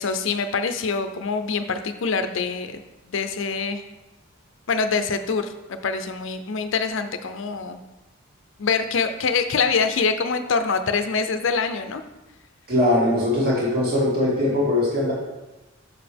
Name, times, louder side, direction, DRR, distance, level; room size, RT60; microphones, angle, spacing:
voice 1, 0.0-2.8 3.1-3.8 4.7-7.8 8.6-12.0, left 5 dB, 65° left, 9 dB, 0.5 m, -25 dB
voice 2, 12.7-15.1, left 1 dB, 45° right, -7 dB, 2.3 m, -21 dB
6.8 x 6.7 x 3.5 m, 1.0 s
head